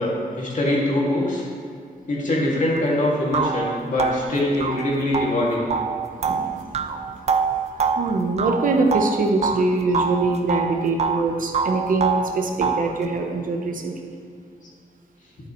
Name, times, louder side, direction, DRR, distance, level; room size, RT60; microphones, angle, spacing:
voice 1, 0.0-1.4 2.1-5.7, left 1 dB, 55° left, -4 dB, 2.3 m, -23 dB
sound 1, 2.8-2.9 3.3-9.6 9.9-11.3 11.5-12.9, right 5 dB, 45° right, 0.5 m, -25 dB
voice 2, 6.2-7.1 8.0-14.0, right 3 dB, 65° right, 3 dB, 0.9 m, -23 dB
11.0 x 8.6 x 3.1 m, 2.3 s
wide cardioid pair, 140°, 15 cm